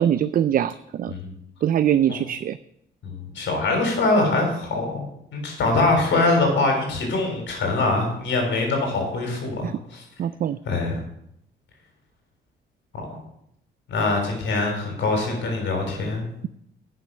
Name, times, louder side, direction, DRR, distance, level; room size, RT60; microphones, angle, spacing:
voice 1, 0.0-1.1 1.6-2.6 9.6-9.7 10.2-10.6, right 10 dB, 45° right, 15 dB, 0.4 m, -22 dB
voice 2, 3.0-5.1 5.3-10.0 10.7-11.0 13.9-16.3, left 2 dB, 70° left, 2 dB, 3.8 m, -23 dB
10.5 x 6.5 x 6.3 m, 0.76 s
cardioid pair, 90°, 20 cm